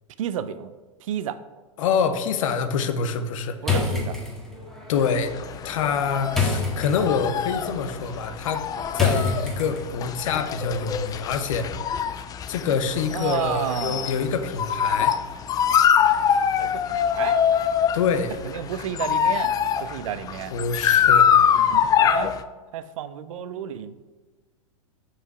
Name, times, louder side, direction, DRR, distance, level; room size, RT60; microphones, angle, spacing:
voice 1, 0.2-0.7 1.0-1.4 3.6-4.2 13.1-14.2 16.6-17.4 18.4-20.5 21.6-22.3 22.7-24.0, right 10 dB, 65° right, 13 dB, 0.5 m, -31 dB
voice 2, 1.8-3.6 4.9-5.3 5.6-8.6 8.9-11.7 12.5-15.2 17.9-18.4 20.5-21.3, left 6 dB, 65° left, 9 dB, 0.8 m, -26 dB
sound 1, 3.6-10.1, left 4 dB, ahead, 1.6 m, -29 dB
sound 2, 5.0-22.4, left 8 dB, 20° left, 0.3 m, -23 dB
5.7 x 5.6 x 4.7 m, 1.3 s
hypercardioid pair, 100°, 18 cm